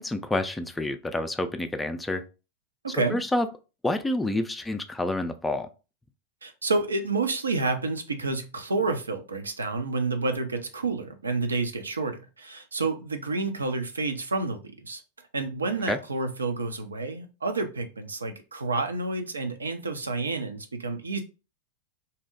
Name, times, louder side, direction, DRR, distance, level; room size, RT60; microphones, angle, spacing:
voice 1, 0.0-2.2 3.1-3.5 3.8-5.7 15.9-16.0, left 1 dB, 10° left, 0.3 m, -28 dB
voice 2, 2.8-3.2 6.4-15.0 15.3-21.2, right 3 dB, 75° right, 0.4 m, -29 dB
2.7 x 2.0 x 3.7 m
figure-of-eight pair, 90°, 0 cm